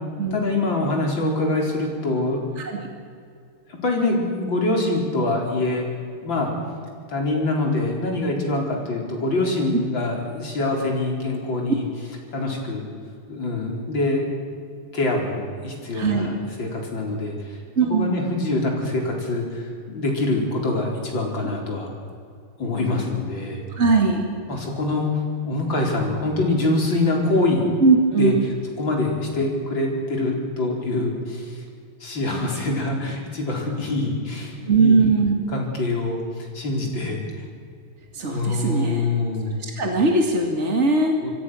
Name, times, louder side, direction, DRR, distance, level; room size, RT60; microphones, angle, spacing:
voice 1, 0.3-2.5 3.7-5.8 6.2-6.5 7.1-11.8 12.3-12.9 13.3-14.3 14.8-17.6 17.9-21.9 22.6-23.6 24.5-27.7 28.2-28.3 28.8-31.6 32.0-35.0 35.5-37.4 38.2-39.6 41.2-41.3, left 2 dB, 25° left, 1 dB, 4.7 m, -24 dB
voice 2, 15.9-16.3 17.7-18.1 21.4-21.5 23.7-24.3 27.8-28.4 34.7-35.3 38.1-39.0 39.6-41.1, right 4 dB, 30° right, 2 dB, 1.2 m, -20 dB
26.5 x 23.0 x 6.5 m, 2.3 s
omnidirectional pair, 5.0 m